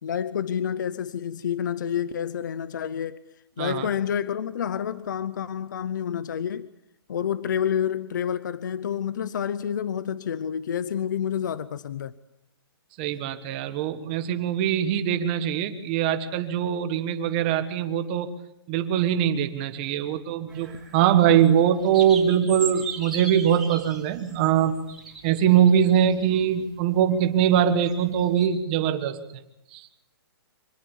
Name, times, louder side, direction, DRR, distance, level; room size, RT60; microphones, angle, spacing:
voice 1, 0.0-3.2 3.6-6.7 7.1-12.1, left 8 dB, 50° left, 0.8 m, -28 dB
voice 2, 3.6-3.9 13.0-18.3 18.7-24.8 25.2-29.2 29.7-29.9, right 9 dB, 20° right, 1.4 m, -22 dB
sound 1, 20.5-28.5, right 5 dB, ahead, 4.9 m, -39 dB
25.5 x 20.0 x 7.2 m
hypercardioid pair, 175°, 13 cm